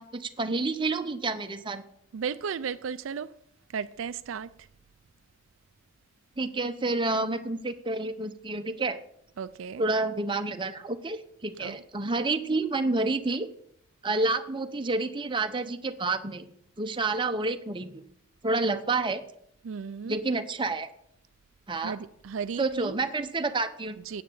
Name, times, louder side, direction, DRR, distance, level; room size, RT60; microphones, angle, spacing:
voice 1, 0.0-1.8 6.4-9.0 9.8-13.5 14.0-16.4 16.8-18.0 18.4-19.2 20.1-20.9 21.7-22.0 22.6-24.0, right 3 dB, 25° right, 0.7 m, -29 dB
voice 2, 2.1-3.3 3.7-4.5 9.4-9.8 11.6-11.8 19.6-20.2 21.8-23.0 24.1-24.2, right 6 dB, 75° right, 0.4 m, -34 dB
9.4 x 8.6 x 7.2 m
head